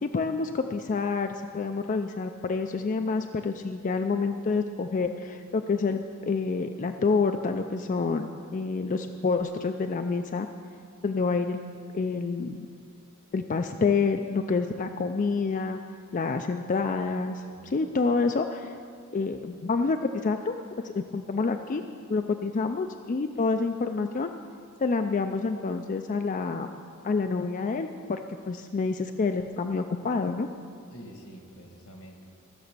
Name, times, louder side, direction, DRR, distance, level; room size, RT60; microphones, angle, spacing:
voice 1, 0.0-10.5 11.0-11.6 11.9-12.7 13.3-15.8 16.1-18.7 19.1-21.8 22.1-24.3 24.8-26.7 27.0-28.2 28.5-30.5, left 4 dB, 35° left, 6 dB, 0.4 m, -28 dB
voice 2, 17.4-17.8 30.9-32.3, equal, 80° left, 3 dB, 1.8 m, -47 dB
15.0 x 7.1 x 6.6 m, 2.4 s
head